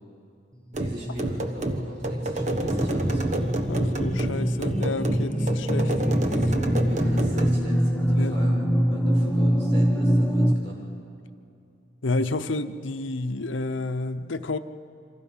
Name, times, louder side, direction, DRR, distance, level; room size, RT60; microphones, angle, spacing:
sound 1, 0.7-7.6, right 1 dB, 40° right, 1.3 m, -28 dB
sound 2, 0.8-10.5, equal, 5° left, 1.0 m, -24 dB
voice 1, 0.8-3.5 6.7-10.8, right 1 dB, 75° right, -3 dB, 7.0 m, -40 dB
voice 2, 3.7-6.0 6.4-6.5 8.2-8.4 12.0-14.6, left 2 dB, 80° left, 10 dB, 0.8 m, -30 dB
28.0 x 25.5 x 5.7 m, 2.5 s
head